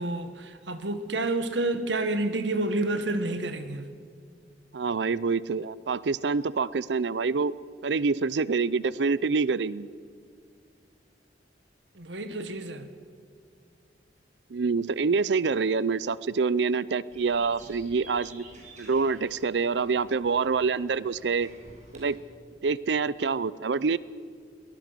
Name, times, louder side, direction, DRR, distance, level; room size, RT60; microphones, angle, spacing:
voice 1, 0.0-3.9 11.9-12.9, right 2 dB, 90° right, 1.6 m, -29 dB
voice 2, 4.7-7.5 7.8-9.9 14.5-18.4 18.8-21.5 21.9-22.2 22.6-24.0, right 4 dB, 75° right, 0.5 m, -26 dB
sound 1, 17.1-22.1, right 2 dB, 40° right, 5.6 m, -50 dB
22.5 x 19.5 x 6.8 m
head